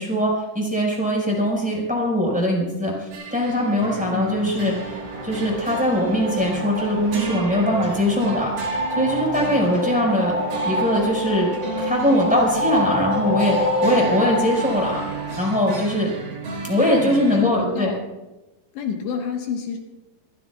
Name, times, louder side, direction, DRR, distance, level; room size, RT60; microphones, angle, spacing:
voice 1, 0.0-4.7 5.2-10.4 10.6-15.0 15.4-16.1 16.7-17.9, equal, ahead, -3 dB, 5.0 m, -21 dB
sound 1, 3.1-17.4, right 4 dB, 60° right, 5.0 m, -34 dB
sound 2, 3.5-15.4, right 2 dB, 75° right, 6.8 m, -40 dB
voice 2, 4.1-4.7 17.0-18.0 18.7-19.8, left 6 dB, 75° left, 2 dB, 3.5 m, -29 dB
sound 3, 4.2-15.9, left 1 dB, 55° left, 3.7 m, -28 dB
28.0 x 15.5 x 2.4 m, 1.0 s
omnidirectional pair, 5.3 m